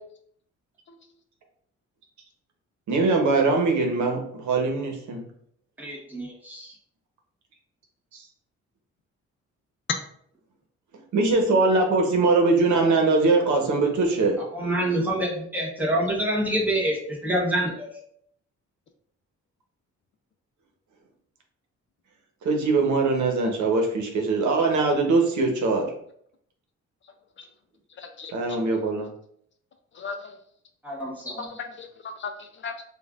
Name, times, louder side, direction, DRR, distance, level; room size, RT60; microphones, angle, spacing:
voice 1, 2.9-5.3 8.1-8.2 11.1-14.4 22.4-25.9 28.3-29.1, right 3 dB, 80° right, 2 dB, 0.9 m, -22 dB
voice 2, 5.8-6.7 14.4-17.9 30.8-31.5, right 1 dB, 5° right, -4 dB, 1.0 m, -27 dB
voice 3, 28.0-28.6 29.9-30.3 31.4-32.8, left 5 dB, 40° left, 5 dB, 0.4 m, -37 dB
5.1 x 2.4 x 2.4 m, 0.66 s
cardioid pair, 150°, 29 cm